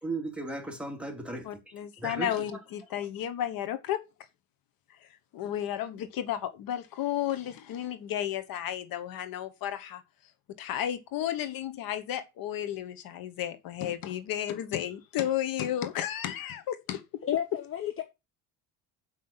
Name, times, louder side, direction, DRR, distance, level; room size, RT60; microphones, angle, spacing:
voice 1, 0.0-2.6 3.0-3.1, right 2 dB, 5° right, 2.7 m, -37 dB
voice 2, 1.4-4.0 5.0-10.0 10.6-17.0, left 11 dB, 65° left, 1.3 m, -33 dB
voice 3, 17.2-18.0, left 10 dB, 35° left, 1.2 m, -31 dB
7.3 x 5.8 x 7.2 m
cardioid pair, 125°, 38 cm